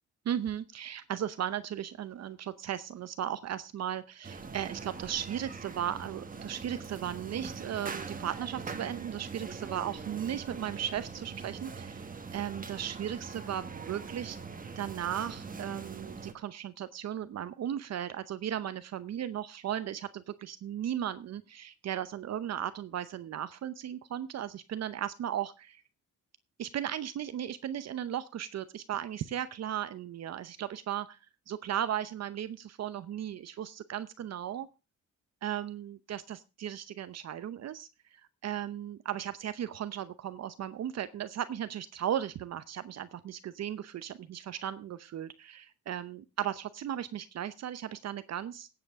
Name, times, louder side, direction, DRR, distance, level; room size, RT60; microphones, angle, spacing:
voice 1, 0.2-12.1 12.3-14.4 14.8-25.8 26.6-31.2 31.5-34.7 35.4-48.7, right 10 dB, 60° right, 13 dB, 0.8 m, -36 dB
sound 1, 4.2-16.3, right 5 dB, 30° right, 1.5 m, -42 dB
16.5 x 7.9 x 3.5 m, 0.29 s
cardioid pair, 90°, 30 cm